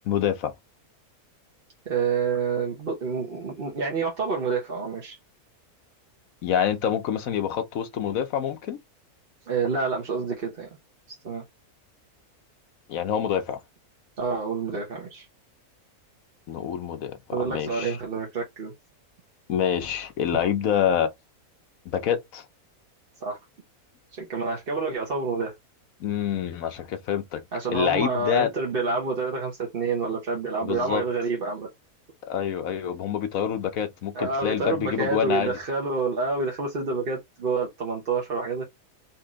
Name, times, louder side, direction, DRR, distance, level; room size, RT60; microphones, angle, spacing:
voice 1, 0.0-0.5 6.4-8.8 12.9-13.6 16.5-17.2 17.5-18.0 19.5-21.1 21.9-22.4 26.0-27.4 27.7-28.5 30.6-31.0 32.3-35.5, left 9 dB, 65° left, 1.2 m, -26 dB
voice 2, 1.9-5.2 9.5-10.7 11.1-11.4 14.2-15.3 17.3-18.7 23.2-23.4 24.1-25.5 27.5-31.7 34.1-38.6, right 4 dB, 40° right, 1.0 m, -28 dB
4.2 x 2.8 x 3.6 m
omnidirectional pair, 1.6 m